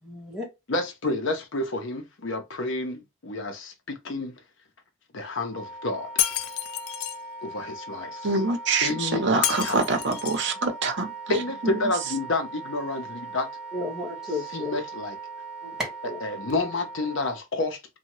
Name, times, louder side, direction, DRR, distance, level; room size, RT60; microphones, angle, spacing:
voice 1, 0.0-0.5 13.7-14.7 15.6-16.2, left 2 dB, ahead, 1.1 m, -33 dB
voice 2, 0.7-4.4 5.1-6.1 7.4-8.3 8.8-9.8 11.3-13.5 14.5-15.2 16.2-17.8, left 2 dB, 60° left, 0.7 m, -29 dB
Wind instrument woodwind instrument, 5.4-17.4, right 3 dB, 40° left, 1.7 m, -40 dB
Shatter, 6.2-7.2 9.4-10.5, left 12 dB, 85° left, 0.3 m, -29 dB
voice 3, 8.2-11.8, right 3 dB, 55° right, 0.8 m, -26 dB
2.8 x 2.3 x 2.9 m
head